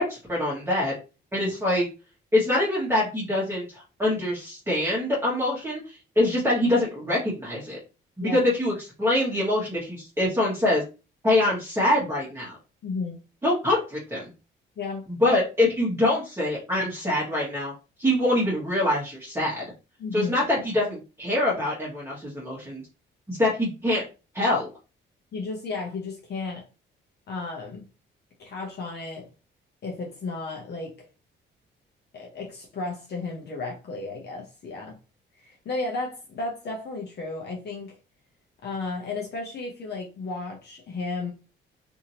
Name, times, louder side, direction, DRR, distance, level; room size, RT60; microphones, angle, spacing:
voice 1, 0.1-0.9 1.3-1.9 2.3-7.8 8.2-10.8 11.2-12.6 13.4-14.2 15.1-17.7 18.0-19.6 20.1-22.8 23.3-24.0 24.3-24.7, left 1 dB, 10° right, 1.1 m, -24 dB
voice 2, 12.8-13.2 14.8-15.1 20.0-20.3 25.3-26.6 27.3-27.8 28.4-29.3 29.8-31.1 32.1-35.0 35.4-38.0 38.6-41.3, left 3 dB, 55° left, 0.8 m, -33 dB
2.7 x 2.7 x 2.9 m
cardioid pair, 90°, 20 cm